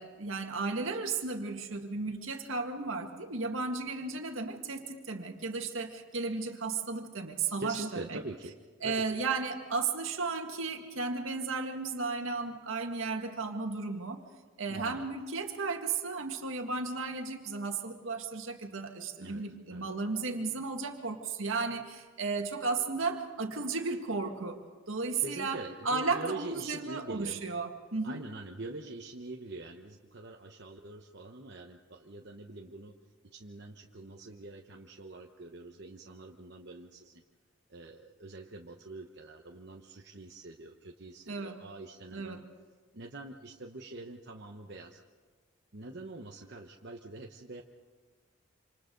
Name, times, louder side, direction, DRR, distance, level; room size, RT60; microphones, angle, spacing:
voice 1, 0.0-8.2 8.8-14.2 14.6-24.6 24.9-28.2 41.3-41.6 42.1-42.4, right 4 dB, 80° right, 4 dB, 1.9 m, -34 dB
voice 2, 7.6-8.6 8.8-9.2 14.7-15.1 19.2-19.4 19.7-19.9 25.2-27.4 28.0-32.9 33.3-37.2 37.7-42.4 42.9-45.0 45.7-47.6, right 2 dB, 55° right, 1 dB, 1.0 m, -44 dB
27.0 x 27.0 x 3.9 m, 1.4 s
head